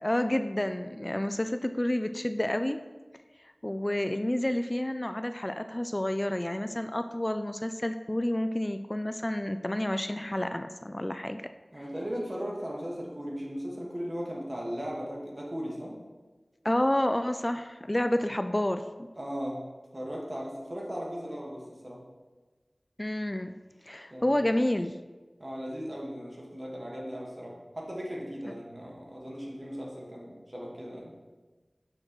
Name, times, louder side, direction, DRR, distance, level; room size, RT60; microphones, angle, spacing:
voice 1, 0.0-2.8 3.6-11.4 16.6-19.1 23.0-23.6 23.9-25.0, left 1 dB, 30° left, 9 dB, 0.3 m, -29 dB
voice 2, 11.7-16.0 19.2-19.7 19.9-22.0 24.1-24.4 25.4-31.1, equal, 40° right, -3 dB, 1.6 m, -37 dB
7.4 x 6.5 x 3.1 m, 1.3 s
wide cardioid pair, 45°, 0 cm